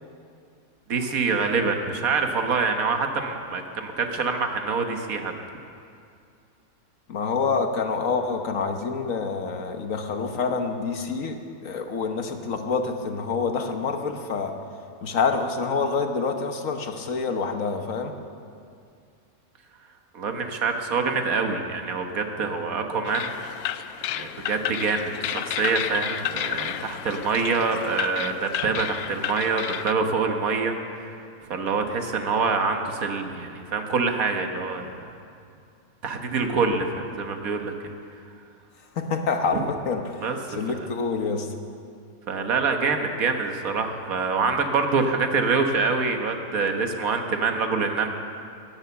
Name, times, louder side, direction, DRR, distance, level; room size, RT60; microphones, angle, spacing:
voice 1, 0.9-5.3 20.1-23.3 24.2-31.1 31.5-35.0 36.0-37.7 39.5-39.6 40.2-40.9 42.3-48.1, right 4 dB, 75° right, 5 dB, 1.6 m, -25 dB
voice 2, 7.1-14.5 15.0-18.1 38.9-41.5, left 4 dB, 65° left, 5 dB, 1.5 m, -27 dB
sound 1, 23.0-29.9, left 11 dB, 90° left, 1.1 m, -31 dB
17.0 x 10.5 x 7.0 m, 2.4 s
omnidirectional pair, 1.5 m